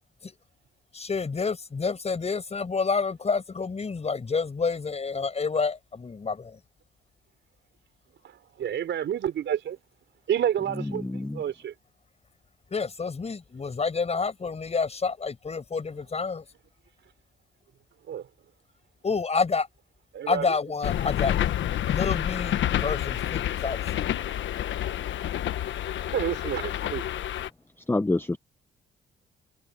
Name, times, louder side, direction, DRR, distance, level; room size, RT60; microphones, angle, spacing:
voice 1, 0.9-6.6 12.7-16.4 19.0-19.7 20.3-21.5 21.9-23.8, left 4 dB, 30° left, 5.5 m, -29 dB
voice 2, 8.2-9.8 10.3-11.7 18.1-18.3 20.1-20.6 26.1-27.0, right 10 dB, 65° right, 4.8 m, -29 dB
voice 3, 10.9-11.4 27.9-28.4, left 2 dB, 10° left, 0.9 m, -27 dB
sound 1, 20.8-27.5, left 11 dB, 70° left, 1.2 m, -28 dB
cardioid pair, 90°, 20 cm